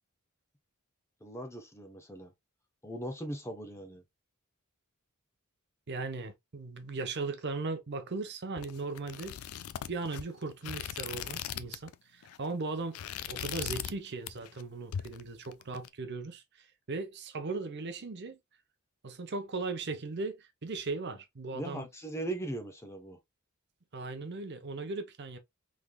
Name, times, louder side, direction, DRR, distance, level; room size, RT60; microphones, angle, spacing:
voice 1, 1.2-2.3 2.8-4.0 21.1-21.2 21.5-23.2, right 1 dB, 10° left, 0.7 m, -39 dB
voice 2, 5.9-9.4 9.9-18.4 19.0-21.9 23.9-25.4, right 3 dB, 50° right, 0.7 m, -38 dB
sound 1, 8.6-11.9 12.2-12.5 12.8-14.0 14.3-14.6 14.9-15.9, left 10 dB, 70° left, 0.3 m, -39 dB
3.8 x 3.2 x 2.2 m
head